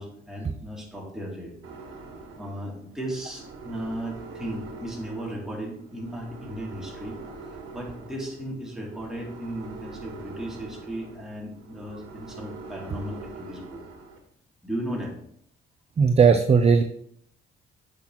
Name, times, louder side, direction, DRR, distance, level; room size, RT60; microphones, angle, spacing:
voice 1, 0.0-1.5 2.4-7.2 7.7-13.8 14.6-15.1, right 1 dB, ahead, -3 dB, 2.6 m, -35 dB
sound 1, 1.6-14.2, right 3 dB, 80° right, 1.5 m, -44 dB
voice 2, 16.0-16.8, right 5 dB, 30° right, 7 dB, 0.5 m, -17 dB
8.2 x 5.9 x 2.9 m, 0.69 s
cardioid pair, 90°, 20 cm